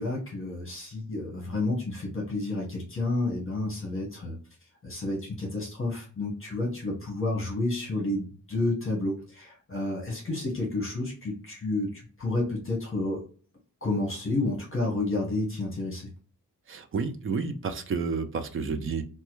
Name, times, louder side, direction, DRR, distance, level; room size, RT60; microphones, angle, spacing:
voice 1, 0.0-4.4 4.8-13.2 13.8-16.1, left 2 dB, 40° left, -3 dB, 1.2 m, -30 dB
voice 2, 16.7-19.0, right 4 dB, 40° right, 9 dB, 0.4 m, -30 dB
3.1 x 2.2 x 3.0 m, 0.39 s
wide cardioid pair, 160°, 33 cm